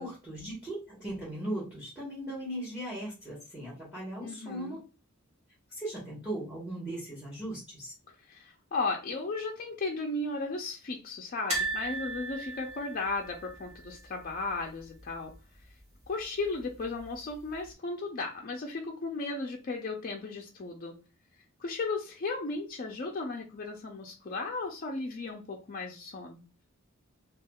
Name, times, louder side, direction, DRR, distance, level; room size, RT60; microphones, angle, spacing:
voice 1, 0.0-4.8 5.7-7.9, right 1 dB, 5° right, 1.2 m, -38 dB
voice 2, 4.2-4.8 8.3-15.3 16.1-21.0 21.6-26.4, left 3 dB, 40° left, 0.4 m, -35 dB
sound 1, 11.5-14.5 14.8-15.0 15.3-15.4 16.6-17.1 17.7-17.8, right 2 dB, 30° right, 1.2 m, -36 dB
3.4 x 2.3 x 2.2 m
head